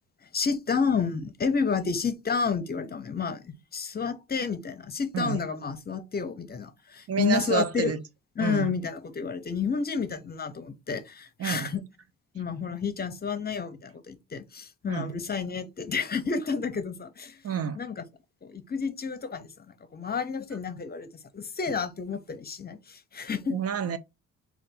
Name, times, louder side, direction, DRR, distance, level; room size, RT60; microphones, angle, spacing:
voice 1, 0.2-7.9 8.4-11.8 12.3-17.4 17.8-18.0 18.4-23.6, left 5 dB, 30° left, 0.7 m, -30 dB
voice 2, 7.1-8.0 8.4-8.7 11.4-11.7 14.9-15.1 17.4-17.8 23.5-24.0, right 7 dB, 50° right, 0.6 m, -29 dB
3.9 x 2.4 x 3.7 m
cardioid pair, 90°, 30 cm